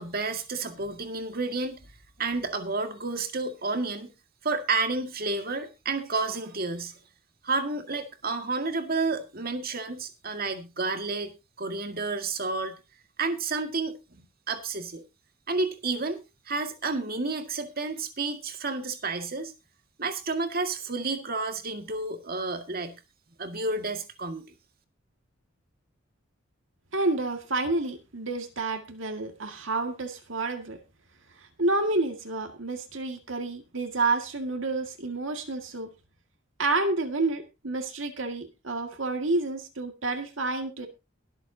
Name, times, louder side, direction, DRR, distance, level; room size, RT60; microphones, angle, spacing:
voice 1, 0.0-1.8 2.2-4.1 4.4-6.9 7.4-11.3 11.6-12.7 13.2-15.0 15.5-16.2 16.5-19.5 20.0-23.0 23.4-24.4, right 3 dB, 50° right, 7 dB, 2.0 m, -30 dB
voice 2, 26.9-30.8 31.6-35.9 36.6-40.9, right 2 dB, 70° right, 5 dB, 2.0 m, -29 dB
22.5 x 8.0 x 2.8 m, 0.27 s
head